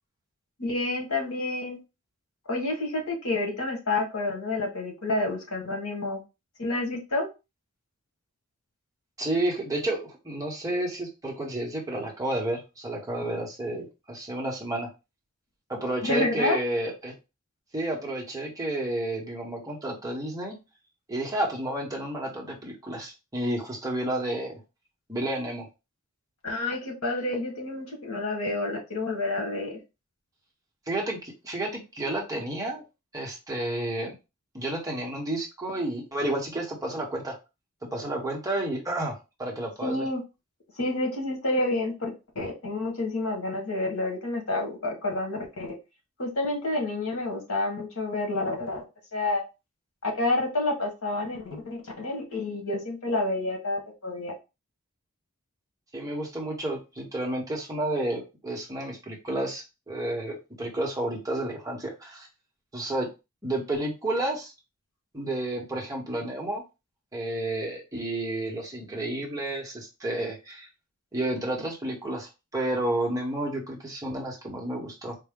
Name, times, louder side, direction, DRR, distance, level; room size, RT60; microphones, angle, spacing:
voice 1, 0.6-1.8 2.5-6.2 6.6-7.3 16.0-16.6 26.4-29.8 39.8-40.2 40.8-45.7 46.2-48.8 49.1-49.4 50.0-54.3, left 2 dB, 75° left, 2 dB, 1.3 m, -29 dB
voice 2, 9.2-14.9 15.7-17.1 17.7-20.6 21.1-24.6 25.1-25.7 30.9-32.8 33.1-34.1 34.5-37.4 37.8-40.0 55.9-62.3 62.7-63.1 63.4-64.5 65.1-66.6 67.1-70.7 71.1-75.2, right 1 dB, 15° right, -1 dB, 0.9 m, -31 dB
4.3 x 2.1 x 3.6 m, 0.27 s
head